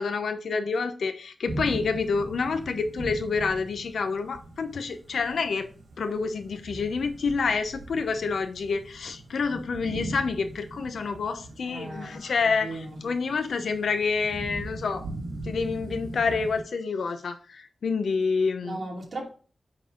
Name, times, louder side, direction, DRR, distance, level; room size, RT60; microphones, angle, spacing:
voice 1, 0.0-5.7 6.0-15.1 15.4-18.8, left 4 dB, 85° left, 0.9 m, -28 dB
sound 1, 1.4-16.6, right 2 dB, 90° right, 2.1 m, -40 dB
voice 2, 11.6-13.0 18.6-19.3, right 2 dB, 55° right, 2.6 m, -37 dB
9.1 x 4.0 x 3.9 m
wide cardioid pair, 80°, 0 cm